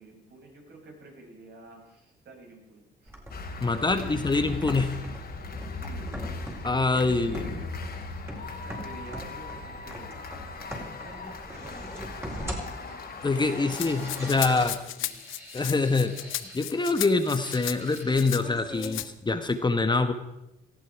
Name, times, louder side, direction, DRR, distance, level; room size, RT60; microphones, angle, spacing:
voice 1, 0.0-3.1 3.6-4.1 5.8-6.1 7.1-7.9 8.6-10.1 11.0-11.8 12.1-13.0 13.7-15.1, right 3 dB, 60° right, -1 dB, 6.8 m, -49 dB
sound 1, 3.1-19.1, right 1 dB, 10° right, 4.6 m, -42 dB
sound 2, 3.3-14.7, left 3 dB, 50° left, 3.0 m, -39 dB
voice 2, 3.6-4.9 6.6-7.4 13.2-14.8 15.5-20.1, left 3 dB, 20° left, 8 dB, 1.3 m, -25 dB
Rattle (instrument), 13.7-18.4 18.8-19.1, left 14 dB, 85° left, 0.8 m, -35 dB
18.0 x 15.0 x 4.8 m, 0.87 s
cardioid pair, 90°, 20 cm